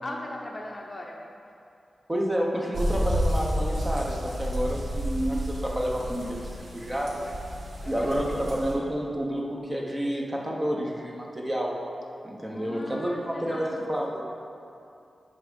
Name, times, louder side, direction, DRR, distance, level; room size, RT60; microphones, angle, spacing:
voice 1, 0.0-1.2 7.8-8.2 12.5-13.9, left 1 dB, 30° left, 0 dB, 0.7 m, -39 dB
voice 2, 2.1-7.3 7.8-11.8 12.2-14.3, equal, 15° right, -2 dB, 1.0 m, -29 dB
sound 1, 2.7-8.7, equal, 90° right, 1.6 m, -30 dB
10.0 x 3.5 x 5.3 m, 2.6 s
wide cardioid pair, 95°, 0 cm